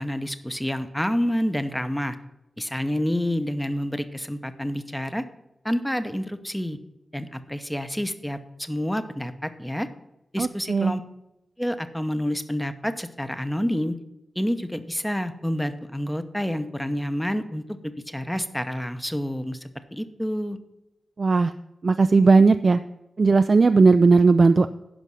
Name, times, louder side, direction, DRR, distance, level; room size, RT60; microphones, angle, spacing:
voice 1, 0.0-2.2 2.6-5.2 5.6-6.8 7.1-9.9 10.3-11.0 11.6-14.0 14.4-20.6, equal, 5° left, 10 dB, 0.8 m, -28 dB
voice 2, 10.4-10.9 21.2-21.5 21.8-22.8 23.2-24.7, right 4 dB, 50° right, 9 dB, 0.3 m, -17 dB
11.0 x 5.3 x 6.2 m, 0.93 s
wide cardioid pair, 85°, 0 cm